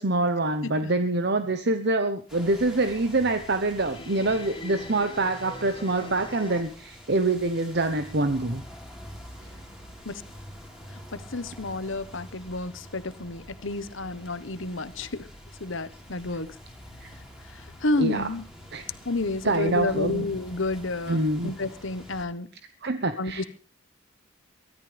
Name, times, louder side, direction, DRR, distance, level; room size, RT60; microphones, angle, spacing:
voice 1, 0.0-8.6 9.4-9.5 17.0-17.1 18.0-18.3 18.7-18.8 19.4-20.3 21.1-21.5 22.8-23.4, right 2 dB, 50° right, 9 dB, 1.1 m, -25 dB
sound 1, 2.3-22.3, equal, 5° right, 4.4 m, -46 dB
sound 2, 3.7-6.6, left 1 dB, 25° left, 1.6 m, -42 dB
voice 2, 11.1-15.3 15.6-16.5 17.5-18.4 19.0-22.5 23.2-23.4, left 2 dB, 65° left, 13 dB, 1.3 m, -30 dB
23.5 x 13.5 x 3.5 m, 0.38 s
head